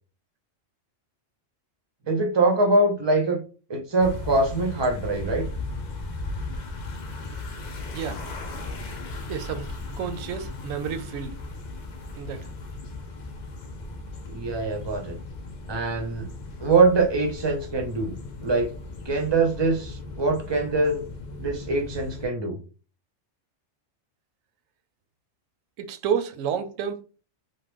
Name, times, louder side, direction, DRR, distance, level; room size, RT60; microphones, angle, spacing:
voice 1, 2.1-3.4 3.7-5.5 14.3-15.2 15.7-16.3 16.6-18.2 18.4-18.7 19.1-21.1 21.4-22.6, right 3 dB, 30° right, 0.5 m, -23 dB
sound 1, 4.0-22.3, left 2 dB, 50° left, 0.5 m, -37 dB
voice 2, 9.3-9.7 10.0-11.4 12.2-12.4 25.8-27.0, right 7 dB, 85° right, 1.0 m, -30 dB
3.0 x 2.2 x 3.4 m
omnidirectional pair, 1.3 m